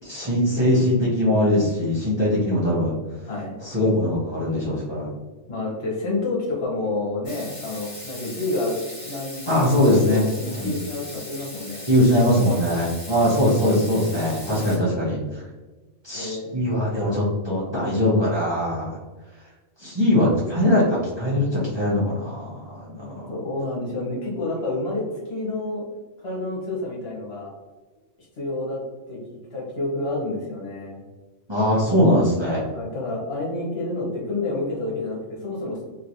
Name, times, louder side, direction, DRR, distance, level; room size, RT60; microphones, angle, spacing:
voice 1, 0.0-2.9 3.6-5.1 9.5-10.7 11.9-15.4 16.0-19.0 19.8-23.3 31.5-32.6, left 1 dB, 25° right, -7 dB, 0.8 m, -21 dB
voice 2, 3.2-3.6 5.5-10.3 10.6-11.9 16.1-16.5 23.3-25.9 26.2-27.5 28.4-28.8 29.1-29.2 29.5-31.0 32.7-35.8, left 2 dB, 55° left, -4 dB, 1.3 m, -29 dB
Water tap faucet / Sink (filling or washing), 7.2-14.8, left 1 dB, 35° left, 1.6 m, -39 dB
3.1 x 2.9 x 2.6 m, 1.2 s
omnidirectional pair, 1.3 m